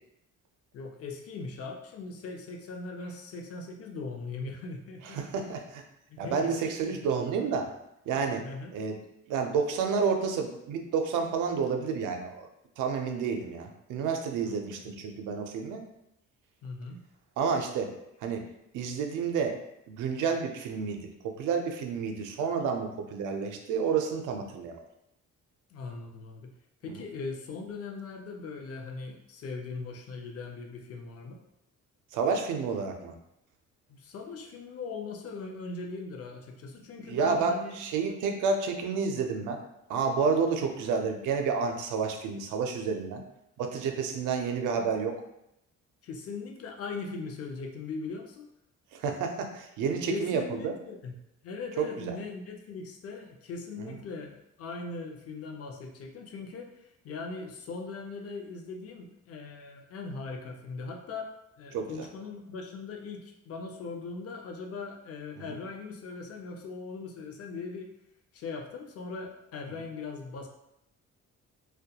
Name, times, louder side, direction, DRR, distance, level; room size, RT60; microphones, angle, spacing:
voice 1, 0.7-5.2 6.1-6.6 6.9-7.0 8.3-8.7 14.4-14.5 16.6-17.0 25.7-26.5 26.8-31.4 33.9-37.8 46.0-48.5 50.1-51.1 51.4-61.3 61.6-67.9 68.3-70.5, left 4 dB, 50° left, 2 dB, 0.5 m, -40 dB
voice 2, 5.1-5.8 6.2-7.7 8.1-8.4 8.7-9.0 9.3-12.5 12.8-15.8 17.4-17.9 18.2-18.4 18.7-19.6 19.9-24.8 26.9-27.0 32.1-33.1 37.1-39.6 39.9-43.2 43.6-45.2 48.9-50.7 51.8-52.1 53.8-53.9 61.7-62.1 65.4-65.5, right 5 dB, 85° right, 4 dB, 0.5 m, -30 dB
2.2 x 2.2 x 2.7 m, 0.82 s
cardioid pair, 90°, 30 cm